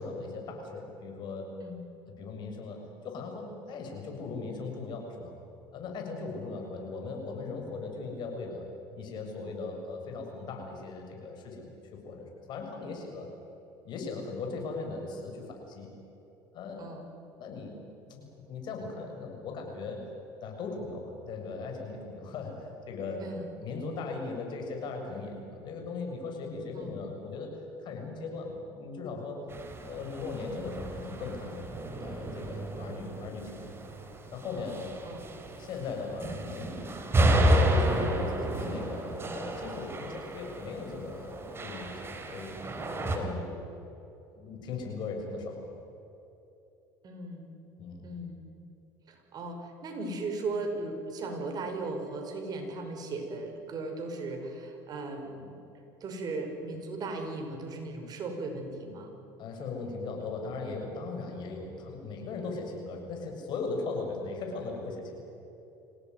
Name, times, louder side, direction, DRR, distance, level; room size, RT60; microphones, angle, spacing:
voice 1, 0.0-1.5 2.2-2.8 3.0-5.3 5.7-8.6 9.0-13.3 13.8-15.9 16.5-16.9 17.4-20.1 20.4-23.2 23.6-29.4 29.8-31.7 32.0-33.6 34.3-35.0 35.6-36.7 37.4-42.6 43.0-43.6 44.3-45.8 47.8-48.0 59.4-65.2, left 3 dB, 55° left, 2 dB, 7.2 m, -38 dB
voice 2, 16.8-17.1 23.2-23.5 26.7-27.0 35.0-35.3 43.1-43.5 47.0-47.6 48.0-48.5 49.1-55.6 56.0-59.1, right 2 dB, 45° right, 4 dB, 5.9 m, -37 dB
sound 1, 29.5-43.2, right 1 dB, 25° right, 4.1 m, -31 dB
26.5 x 18.0 x 9.6 m, 3.0 s
supercardioid pair, 90°, 9 cm